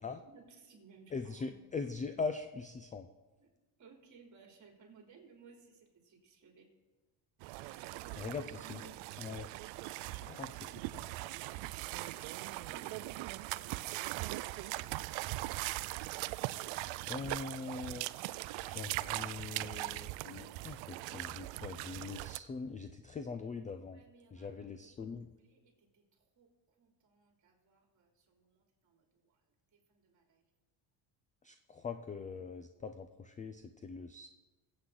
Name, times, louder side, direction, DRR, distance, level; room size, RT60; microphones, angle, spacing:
voice 1, 0.0-1.5 3.4-3.5 3.8-6.7 7.5-8.4 8.6-9.0 10.0-10.4 11.2-11.4 11.7-14.6 23.9-25.1 25.4-30.4, right 5 dB, 35° right, 0 dB, 3.3 m, -61 dB
voice 2, 1.1-3.1 8.2-8.8 9.2-9.5 10.3-11.0 17.1-18.2 18.6-24.0 24.3-25.3 31.4-34.3, left 4 dB, 15° left, 9 dB, 0.3 m, -42 dB
sound 1, 7.4-22.4, right 18 dB, 70° right, 0.5 m, -40 dB
22.0 x 8.2 x 3.9 m, 1.2 s
cardioid pair, 130°, 49 cm